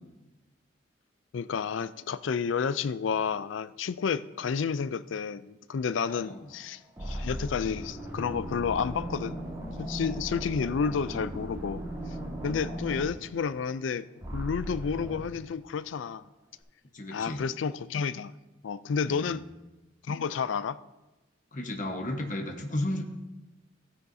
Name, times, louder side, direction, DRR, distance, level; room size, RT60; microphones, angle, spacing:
voice 1, 1.3-9.4 9.8-11.8 12.4-14.1 14.3-16.2 17.1-18.3 18.6-19.4 20.1-20.8, left 6 dB, 85° left, 15 dB, 0.4 m, -30 dB
voice 2, 6.1-6.4 16.9-17.4 19.1-19.3 21.5-23.0, left 1 dB, 45° left, 2 dB, 1.1 m, -33 dB
sound 1, 6.3-6.6 7.0-13.9 14.2-15.3, equal, 20° right, 2.7 m, -37 dB
16.0 x 9.6 x 2.7 m, 1.0 s
head